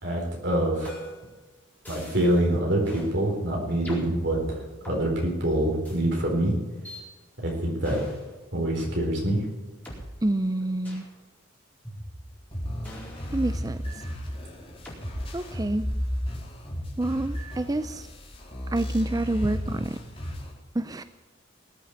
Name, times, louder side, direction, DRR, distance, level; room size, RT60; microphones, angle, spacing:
voice 1, 0.0-1.1 1.9-6.5 7.4-8.0 8.5-9.5, right 1 dB, 55° right, -1 dB, 4.1 m, -25 dB
sound 1, 0.8-1.3 1.8-2.4 2.8-3.1 3.8-5.0 5.8-6.0 6.8-7.0 7.8-8.3 8.8-9.0 9.8-10.0 10.8-11.1 11.8-12.4 12.8-14.1 14.8-15.0 15.8-16.2, equal, 10° left, 4.5 m, -42 dB
voice 2, 10.2-11.0 13.3-13.8 15.3-15.8 17.0-18.1 18.7-20.0 20.7-21.0, right 1 dB, 20° right, 12 dB, 0.4 m, -27 dB
sound 2, 12.5-20.5, equal, 25° left, 4.0 m, -34 dB
19.0 x 8.5 x 8.7 m, 1.2 s
head